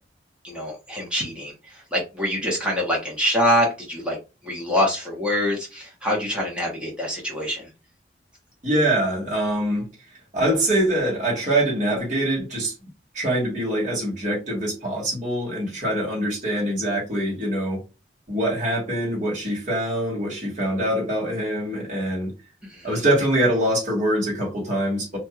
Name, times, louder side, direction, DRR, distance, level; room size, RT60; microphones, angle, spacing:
voice 1, 0.4-4.2 4.4-7.7 22.7-22.9, equal, 5° right, 1.0 m, -25 dB
voice 2, 8.6-9.9 10.3-12.7 13.1-17.8 18.3-22.3 22.8-25.2, right 1 dB, 40° right, 1.5 m, -24 dB
2.9 x 2.6 x 2.4 m
head